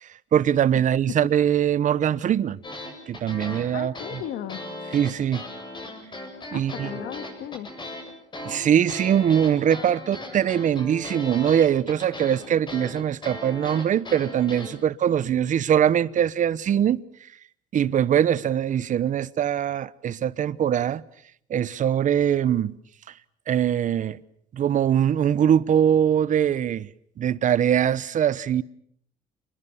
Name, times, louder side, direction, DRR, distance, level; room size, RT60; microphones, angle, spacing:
voice 1, 0.0-2.6 3.1-3.9 4.9-5.4 6.5-6.9 8.4-17.0 17.7-21.0 21.5-22.8 23.1-23.2 23.5-24.2 24.5-26.9 27.2-28.6, right 9 dB, 50° right, 1.0 m, -22 dB
sound 1, 2.6-14.8, left 1 dB, 25° left, 7.9 m, -37 dB
voice 2, 3.7-4.6 6.5-7.7, left 11 dB, 85° left, 1.8 m, -36 dB
29.0 x 21.5 x 7.2 m
cardioid pair, 110°, 17 cm